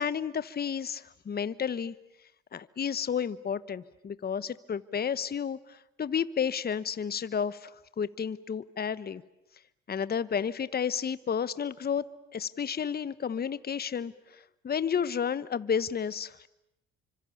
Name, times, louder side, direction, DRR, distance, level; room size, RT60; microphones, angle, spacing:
voice 1, 0.0-1.9 2.5-7.7 8.0-9.2 9.9-12.0 12.3-16.5, left 7 dB, 35° left, 16 dB, 1.0 m, -31 dB
29.0 x 25.5 x 7.1 m, 0.86 s
supercardioid pair, 65°, 29 cm